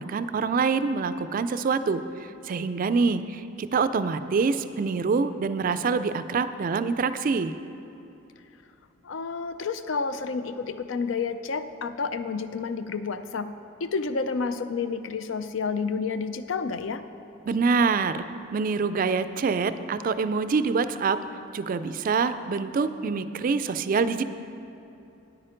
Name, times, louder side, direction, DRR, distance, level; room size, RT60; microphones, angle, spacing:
voice 1, 0.0-2.1 2.4-7.5 17.5-18.3 18.5-21.2 21.5-24.2, right 4 dB, 45° right, 12 dB, 0.3 m, -25 dB
voice 2, 9.0-13.5 13.8-17.0, left 4 dB, 75° left, 11 dB, 0.5 m, -30 dB
9.6 x 8.8 x 5.0 m, 2.8 s
head